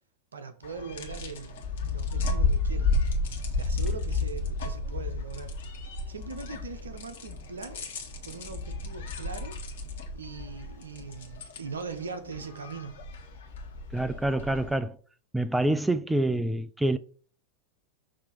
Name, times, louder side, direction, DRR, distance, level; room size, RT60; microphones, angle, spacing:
voice 1, 0.3-2.9 3.6-5.5 6.1-7.8 8.2-9.6 10.1-13.0, right 4 dB, 70° right, 0.9 m, -40 dB
sound 1, 0.6-14.8, left 3 dB, 60° left, 1.3 m, -32 dB
voice 2, 13.9-15.0 15.3-17.0, right 1 dB, 5° right, 0.3 m, -26 dB
6.5 x 2.9 x 5.5 m
figure-of-eight pair, 90°, 0 cm